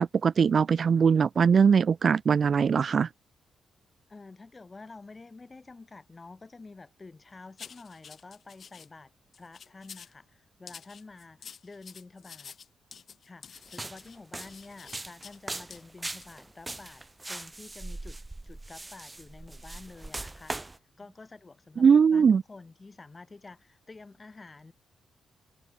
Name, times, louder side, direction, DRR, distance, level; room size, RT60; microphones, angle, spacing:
voice 1, 0.0-3.1 21.8-22.4, right 6 dB, 55° right, 0.7 m, -21 dB
voice 2, 4.1-9.1 9.4-12.6 13.2-17.0 17.3-18.2 18.5-20.7 21.0-24.7, left 3 dB, 30° left, 6.5 m, -49 dB
sound 1, 7.6-8.9 9.3-10.2 10.7-15.4 15.7-15.8 16.2-16.4, left 7 dB, 55° left, 4.1 m, -48 dB
sound 2, 13.7-20.8, right 2 dB, 20° right, 4.3 m, -40 dB
cardioid pair, 80°, 0 cm